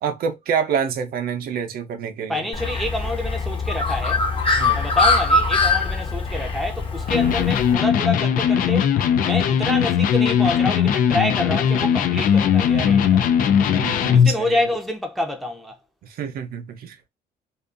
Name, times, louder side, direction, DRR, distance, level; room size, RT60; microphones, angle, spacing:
voice 1, 0.0-2.5 4.6-4.8 13.7-14.6 16.0-17.1, right 7 dB, 60° right, 0.6 m, -27 dB
voice 2, 2.3-4.2 4.8-8.9 9.2-13.2 14.1-15.8, left 1 dB, ahead, 0.6 m, -27 dB
Bird, 2.5-7.7, left 3 dB, 30° left, 0.8 m, -22 dB
Electric guitar, 7.1-14.4, left 8 dB, 55° left, 0.4 m, -19 dB
2.5 x 2.4 x 2.5 m
cardioid pair, 110°, 17 cm